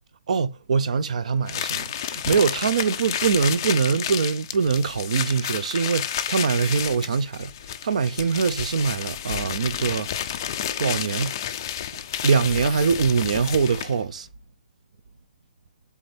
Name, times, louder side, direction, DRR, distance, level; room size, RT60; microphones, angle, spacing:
voice 1, 0.3-10.4 10.8-11.3 12.2-14.3, right 5 dB, 45° right, 0.5 m, -23 dB
sound 1, 1.5-14.0, left 10 dB, 20° left, 0.4 m, -31 dB
8.2 x 3.5 x 3.4 m
hypercardioid pair, 180°, 5 cm